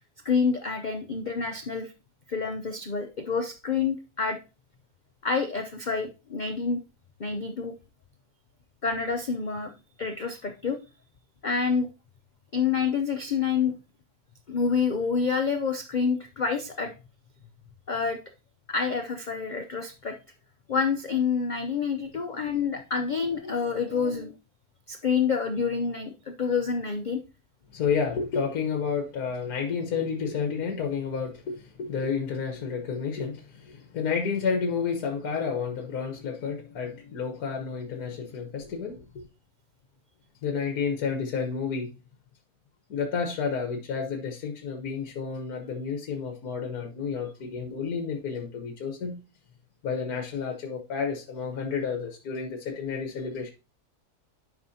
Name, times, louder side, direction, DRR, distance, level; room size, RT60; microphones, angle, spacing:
voice 1, 0.2-1.9 2.3-4.4 5.2-6.8 7.2-7.7 8.8-9.7 10.0-10.8 11.4-11.9 12.5-13.7 14.5-16.9 17.9-18.2 18.7-20.2 20.7-24.3 24.9-27.2, left 5 dB, 85° left, 0.4 m, -27 dB
voice 2, 23.4-24.1 27.7-39.2 40.4-41.9 42.9-49.2 49.8-53.5, left 6 dB, 70° left, 1.6 m, -31 dB
11.0 x 5.1 x 2.7 m
omnidirectional pair, 1.7 m